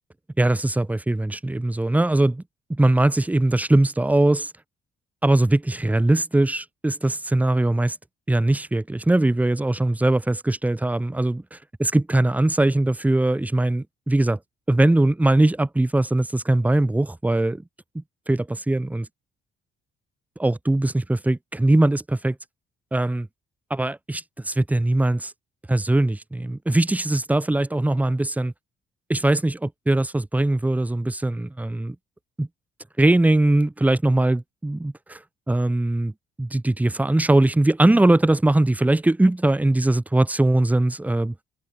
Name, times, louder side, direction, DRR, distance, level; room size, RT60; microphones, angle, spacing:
voice 1, 0.4-2.4 2.7-4.5 5.2-8.0 8.3-14.4 14.7-17.6 17.9-19.1 20.4-22.4 22.9-23.3 23.7-25.3 25.7-28.5 29.1-32.0 32.4-32.5 33.0-35.2 35.5-36.1 36.4-41.3, right 2 dB, 10° right, 0.7 m, -21 dB
cardioid pair, 90°, 20 cm